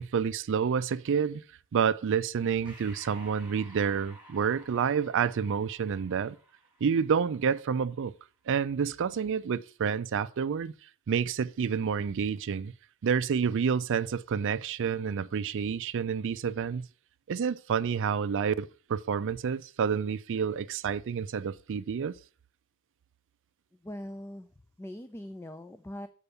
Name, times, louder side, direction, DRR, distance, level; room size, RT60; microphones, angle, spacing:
voice 1, 0.0-1.4 1.7-6.4 6.8-8.1 8.5-10.7 11.1-12.7 13.0-16.9 17.3-22.1, right 6 dB, 60° right, 0.4 m, -29 dB
Breathing, 2.6-7.5, right 1 dB, 5° right, 3.3 m, -54 dB
voice 2, 23.8-24.5 24.8-26.1, left 1 dB, 10° left, 0.4 m, -41 dB
6.9 x 4.5 x 6.8 m
head